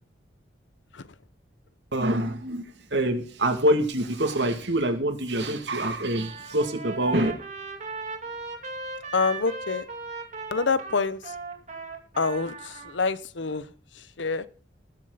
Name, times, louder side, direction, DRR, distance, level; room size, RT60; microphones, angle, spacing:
voice 1, 1.9-2.6 2.9-7.3, right 1 dB, 75° right, 5 dB, 2.4 m, -25 dB
Trumpet, 6.1-13.0, right 3 dB, 40° right, 2.7 m, -38 dB
voice 2, 9.1-9.8 10.5-11.2 12.2-13.6 14.2-14.4, left 4 dB, 90° left, 16 dB, 0.9 m, -26 dB
19.5 x 7.7 x 4.0 m, 0.40 s
head